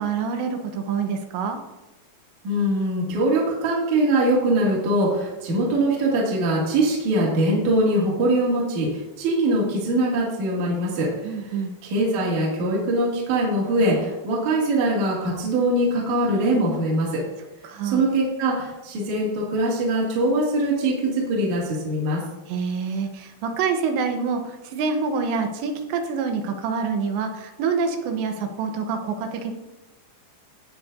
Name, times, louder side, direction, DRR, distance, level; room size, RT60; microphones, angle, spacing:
voice 1, 0.0-1.6 11.2-11.7 17.6-18.0 22.5-29.5, right 5 dB, 80° right, 5 dB, 3.2 m, -26 dB
voice 2, 2.4-11.5 11.8-17.2 17.8-22.2, right 1 dB, 45° right, -5 dB, 3.2 m, -22 dB
15.5 x 8.7 x 2.7 m, 1.0 s
omnidirectional pair, 5.1 m